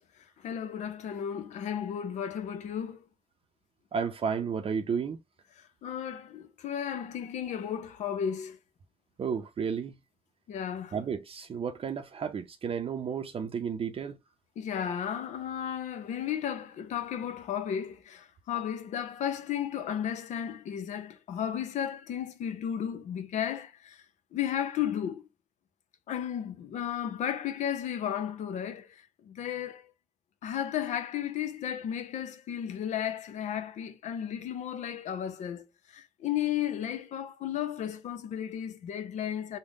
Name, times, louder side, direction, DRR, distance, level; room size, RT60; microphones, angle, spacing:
voice 1, 0.4-3.0 5.8-8.6 10.5-10.9 14.6-24.0 24.3-25.2 26.1-29.9 30.4-35.7 35.9-39.6, left 9 dB, 85° left, 0.6 m, -34 dB
voice 2, 3.9-5.2 9.2-10.0 10.9-14.2, right 6 dB, 55° right, 0.5 m, -32 dB
3.6 x 2.1 x 3.6 m
cardioid pair, 80°, 12 cm